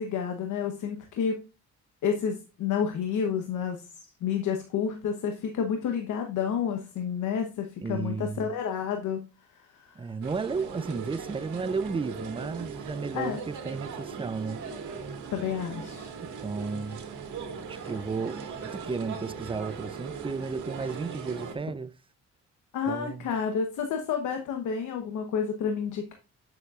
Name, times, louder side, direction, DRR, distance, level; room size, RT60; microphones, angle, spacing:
voice 1, 0.0-1.4 2.0-3.8 4.2-9.3 9.7-10.0 13.1-13.4 15.3-16.1 17.7-17.9 22.7-26.1, left 7 dB, 75° left, 1.1 m, -30 dB
voice 2, 7.8-8.5 10.0-14.6 16.2-17.0 17.7-21.9 22.9-23.3, right 4 dB, 20° right, 0.5 m, -33 dB
sound 1, 10.2-21.5, right 6 dB, 75° right, 2.0 m, -39 dB
9.3 x 6.9 x 2.4 m
cardioid pair, 90°, 30 cm